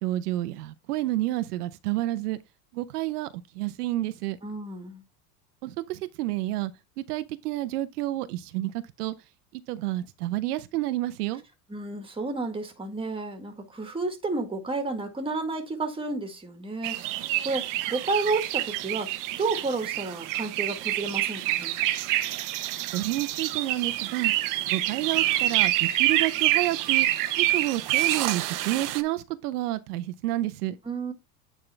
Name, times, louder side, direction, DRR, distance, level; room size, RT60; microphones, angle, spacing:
voice 1, 0.0-2.4 2.7-3.3 3.5-4.4 5.6-6.7 7.0-9.1 9.5-11.4 22.9-24.3 24.6-27.1 27.4-30.8, right 16 dB, 80° right, 0.8 m, -29 dB
voice 2, 4.4-5.0 11.7-17.2 17.4-19.1 19.4-21.8 30.9-31.1, right 3 dB, 10° right, 1.7 m, -31 dB
sound 1, 16.8-29.0, right 14 dB, 45° right, 0.8 m, -27 dB
9.1 x 3.7 x 3.4 m
supercardioid pair, 120°, 46 cm